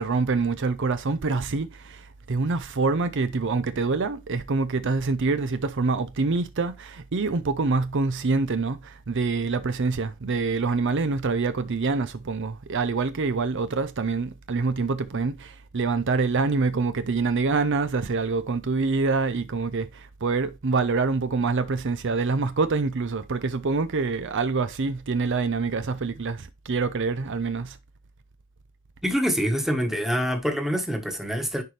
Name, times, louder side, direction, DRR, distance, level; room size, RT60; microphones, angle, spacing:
voice 1, 0.0-27.8, right 4 dB, 60° right, 0.6 m, -26 dB
voice 2, 29.0-31.6, equal, ahead, 1.3 m, -25 dB
10.5 x 4.2 x 3.3 m
head